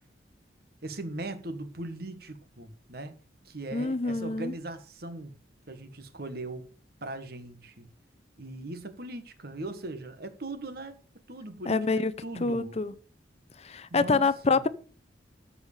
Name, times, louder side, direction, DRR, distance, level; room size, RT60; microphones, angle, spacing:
voice 1, 0.8-3.1 3.4-5.3 5.7-6.7 7.0-7.9 8.4-11.0 11.3-11.8 12.2-12.8 13.9-14.6, right 2 dB, 55° right, 1.6 m, -39 dB
voice 2, 3.7-4.5 11.7-12.1 12.4-12.9 13.6-14.7, left 3 dB, 35° left, 0.6 m, -26 dB
13.5 x 4.9 x 6.7 m
head